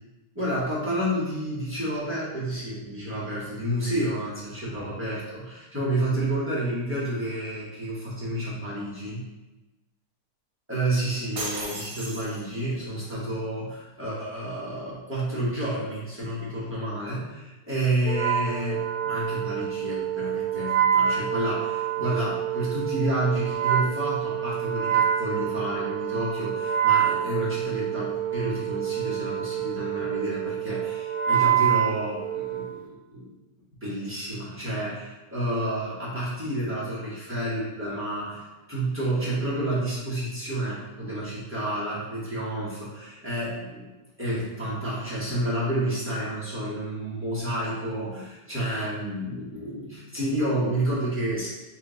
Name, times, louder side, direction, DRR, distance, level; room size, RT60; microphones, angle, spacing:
voice 1, 0.3-9.2 10.7-33.3 33.8-43.8 44.2-51.5, right 1 dB, 15° right, -10 dB, 0.5 m, -30 dB
sound 1, 11.4-12.8, right 2 dB, 60° right, 1.3 m, -35 dB
Wind instrument woodwind instrument, 18.0-32.8, right 10 dB, 85° right, 1.5 m, -27 dB
3.4 x 3.0 x 3.8 m, 1.1 s
omnidirectional pair, 2.3 m